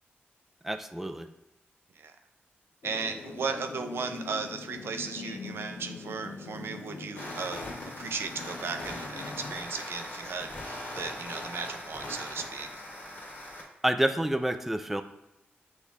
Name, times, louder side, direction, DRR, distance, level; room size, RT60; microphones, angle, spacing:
voice 1, 0.6-1.3 13.8-15.0, right 1 dB, 5° right, 9 dB, 0.3 m, -28 dB
sound 1, 2.8-9.6, left 5 dB, 75° left, 0.4 m, -43 dB
voice 2, 2.8-7.7 8.0-12.7, right 5 dB, 85° right, 6 dB, 0.4 m, -36 dB
sound 2, 7.1-13.6, left 1 dB, 45° left, 1.6 m, -40 dB
6.2 x 2.4 x 3.4 m, 0.94 s
wide cardioid pair, 80°, 4 cm